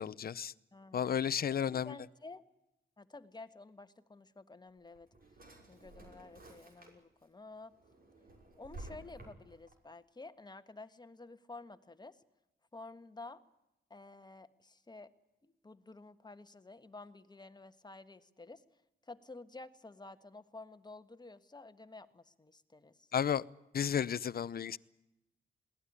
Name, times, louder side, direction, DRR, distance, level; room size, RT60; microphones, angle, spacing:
voice 1, 0.0-0.5 0.9-1.9 23.1-23.4 23.7-24.8, left 8 dB, 50° left, 18 dB, 0.7 m, -33 dB
voice 2, 0.7-1.2 1.5-2.4 3.0-5.1 5.7-7.7 8.6-12.2 12.7-13.4 13.9-15.1 15.4-18.6 19.1-23.1, left 3 dB, 20° left, 10 dB, 1.5 m, -51 dB
Drawer open or close, 4.7-7.3 7.7-9.7, right 2 dB, 50° right, 6.1 m, -53 dB
21.5 x 17.5 x 9.8 m, 0.90 s
cardioid pair, 80°, 20 cm